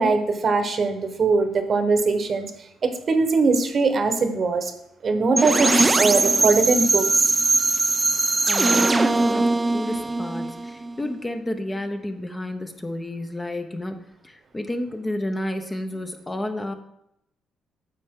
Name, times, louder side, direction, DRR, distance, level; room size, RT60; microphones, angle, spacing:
voice 1, 0.0-2.5 2.8-4.7 5.0-7.3, right 4 dB, 40° right, 7 dB, 1.0 m, -21 dB
sound 1, 5.4-11.2, right 3 dB, 20° right, 0.4 m, -21 dB
voice 2, 8.5-16.7, left 1 dB, 15° left, 6 dB, 0.7 m, -31 dB
9.7 x 6.7 x 3.7 m, 0.78 s
cardioid pair, 115°, 0 cm